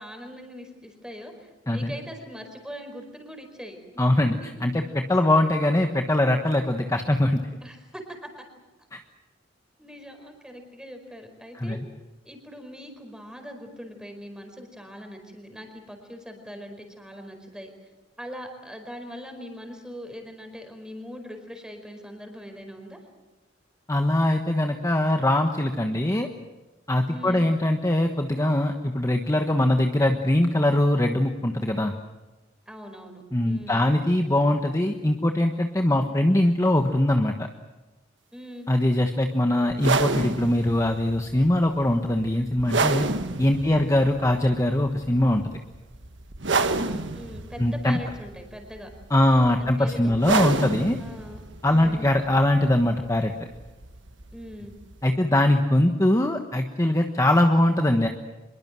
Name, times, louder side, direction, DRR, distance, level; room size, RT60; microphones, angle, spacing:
voice 1, 0.0-3.8 7.6-8.3 9.8-11.8 12.2-17.9 18.2-23.0 27.1-27.5 32.7-33.8 35.9-36.1 38.3-38.7 43.6-43.9 46.5-48.9 49.6-50.4 51.0-51.4 51.7-52.1 54.3-54.7, equal, 5° right, 5 dB, 4.8 m, -41 dB
voice 2, 4.0-7.4 8.9-9.0 11.5-11.8 23.9-26.3 26.9-31.9 33.3-37.5 38.7-43.1 43.4-45.4 47.6-48.0 49.1-51.0 51.6-53.3 55.0-58.1, left 1 dB, 15° left, 5 dB, 1.2 m, -22 dB
sound 1, 39.7-55.0, right 3 dB, 65° right, 1.5 m, -30 dB
25.0 x 22.0 x 7.5 m, 1.1 s
head